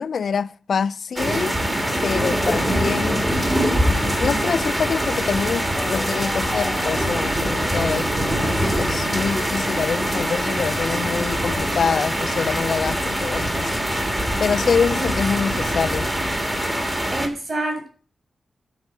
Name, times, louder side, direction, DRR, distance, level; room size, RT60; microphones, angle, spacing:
voice 1, 0.0-1.6 2.0-3.3 3.9-13.8 14.4-16.1, left 6 dB, 65° left, 0.4 m, -25 dB
sound 1, 1.2-17.3, equal, 15° right, 2.3 m, -23 dB
sound 2, 5.7-10.0 10.3-10.4, left 2 dB, 20° left, 1.0 m, -38 dB
voice 2, 14.9-15.6 17.1-17.9, right 1 dB, 35° right, 7.4 m, -29 dB
11.5 x 5.6 x 7.5 m
cardioid pair, 95°, 0 cm